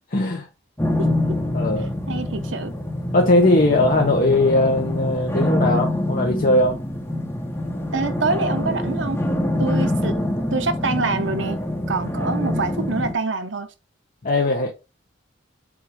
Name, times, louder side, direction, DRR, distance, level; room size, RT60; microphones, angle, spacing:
voice 1, 0.1-0.5 1.5-1.9 3.1-6.8 14.2-14.7, left 2 dB, 50° left, 1.0 m, -19 dB
sound 1, 0.8-13.1, left 1 dB, 15° left, 1.3 m, -25 dB
voice 2, 1.0-1.4 2.1-2.7 7.9-9.2 9.6-10.2 10.5-11.6 11.9-13.7, right 3 dB, 70° right, 0.9 m, -25 dB
7.4 x 2.7 x 5.0 m
head